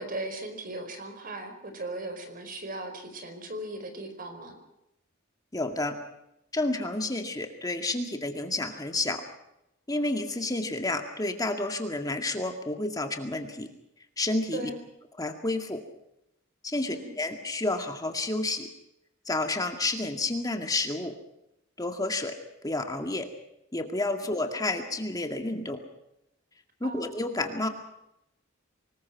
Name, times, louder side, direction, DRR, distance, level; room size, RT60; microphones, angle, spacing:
voice 1, 0.0-4.6 14.5-14.8 16.9-17.2 26.8-27.0, right 2 dB, 45° right, 7 dB, 4.8 m, -37 dB
voice 2, 5.5-6.0 6.5-9.2 9.9-13.7 14.2-14.7 15.2-15.8 16.6-18.7 19.3-21.1 21.8-22.4 22.6-23.3 23.7-25.8 26.8-27.7, left 2 dB, 20° left, 5 dB, 2.1 m, -30 dB
25.5 x 21.0 x 5.9 m, 0.83 s
head